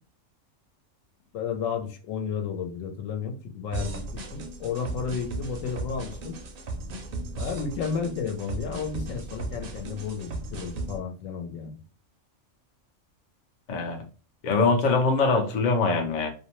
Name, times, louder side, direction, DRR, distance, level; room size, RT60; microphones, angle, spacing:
voice 1, 1.3-6.4 7.4-11.8, left 6 dB, 80° left, 5 dB, 1.0 m, -32 dB
sound 1, 3.7-11.0, right 2 dB, 60° right, 0.6 m, -36 dB
voice 2, 13.7-14.0 14.4-16.3, left 4 dB, 55° left, 4 dB, 0.5 m, -23 dB
2.5 x 2.0 x 2.9 m, 0.37 s
omnidirectional pair, 1.4 m